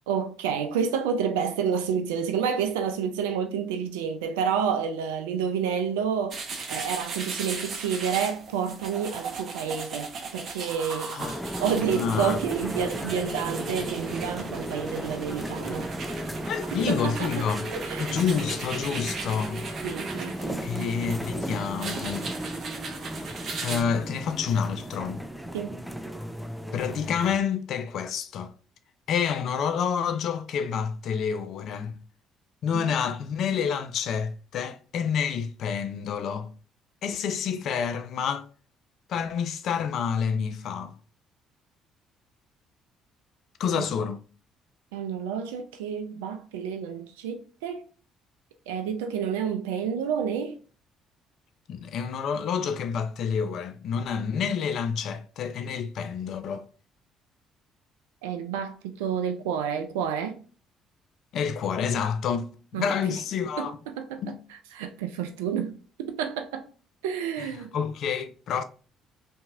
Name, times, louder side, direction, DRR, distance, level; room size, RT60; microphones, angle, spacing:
voice 1, 0.1-6.4 6.7-11.2 11.6-15.9 16.7-17.3 17.7-18.2 19.8-20.6 25.5-25.8 32.9-33.0 43.7-43.8 44.9-47.8 48.7-50.6 58.2-60.4 62.7-62.8 63.6-63.7 64.0-64.3 64.7-65.7 66.0-66.7 67.0-67.7, right 7 dB, 85° right, 0.3 m, -29 dB
sound 1, 6.3-23.8, right 4 dB, 55° right, 0.7 m, -38 dB
voice 2, 11.1-12.4 16.3-17.7 18.0-19.7 20.6-22.3 23.6-25.2 26.7-28.5 29.1-32.0 32.6-36.5 37.0-38.5 39.1-41.0 43.6-44.2 51.7-56.6 61.3-62.5 62.7-63.8 64.2-64.4 67.4-68.6, left 7 dB, 65° left, 0.4 m, -28 dB
sound 2, 11.2-27.4, right 1 dB, 5° right, 0.4 m, -35 dB
2.8 x 2.6 x 2.3 m
hypercardioid pair, 55°, 0 cm